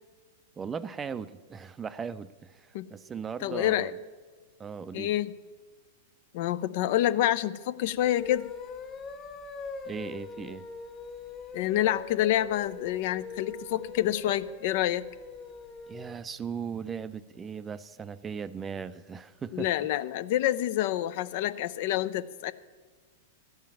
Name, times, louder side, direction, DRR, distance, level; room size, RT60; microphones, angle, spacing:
voice 1, 0.6-3.9 4.6-5.1 9.9-10.7 15.9-19.7, right 6 dB, 20° right, 15 dB, 0.5 m, -38 dB
voice 2, 3.4-3.9 4.9-5.3 6.3-8.5 11.5-15.1 19.5-22.5, left 13 dB, 55° left, 15 dB, 0.5 m, -27 dB
sound 1, 8.0-16.2, left 4 dB, 25° left, 1.2 m, -42 dB
13.0 x 5.7 x 9.0 m, 1.5 s
hypercardioid pair, 110°, 0 cm